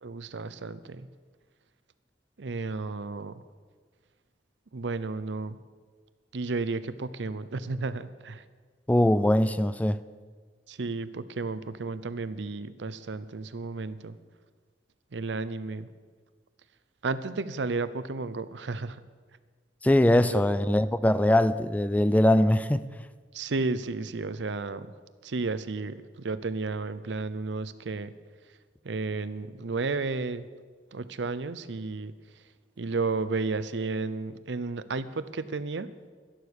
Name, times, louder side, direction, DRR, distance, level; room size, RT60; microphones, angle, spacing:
voice 1, 0.0-1.1 2.4-3.3 4.7-5.6 6.3-8.4 10.7-14.2 15.1-15.9 17.0-19.0 20.3-20.4 23.3-24.9 25.2-28.1 28.8-30.4 30.9-32.1 32.8-36.1, right 3 dB, 80° right, 14 dB, 0.6 m, -32 dB
voice 2, 8.9-10.0 19.8-22.9, left 1 dB, 10° left, 14 dB, 0.3 m, -22 dB
12.0 x 11.5 x 6.4 m, 1.5 s
head